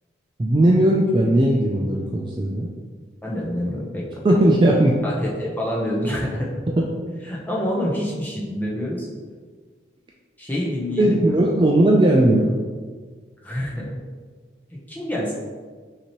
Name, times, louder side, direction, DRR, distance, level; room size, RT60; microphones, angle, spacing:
voice 1, 0.4-2.7 4.2-5.0 6.8-6.9 11.0-12.5, right 1 dB, 25° right, -2 dB, 0.3 m, -17 dB
voice 2, 3.2-4.1 5.0-6.5 7.2-9.1 10.4-11.4 13.4-13.9 14.7-15.3, left 1 dB, 10° left, -4 dB, 0.7 m, -27 dB
5.9 x 2.9 x 3.0 m, 1.5 s
head